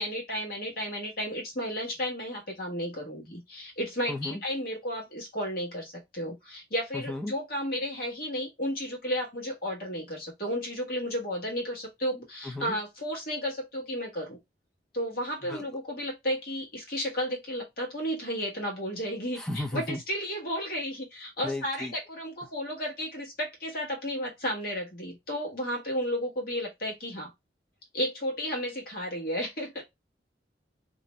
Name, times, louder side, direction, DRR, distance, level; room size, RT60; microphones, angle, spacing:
voice 1, 0.0-14.4 14.9-27.3 27.9-29.8, equal, 55° left, 1.1 m, -33 dB
voice 2, 4.1-4.4 6.9-7.3 12.4-12.8 15.4-15.6 19.4-20.0 21.4-21.9, left 2 dB, 5° left, 0.4 m, -34 dB
2.5 x 2.1 x 2.8 m
head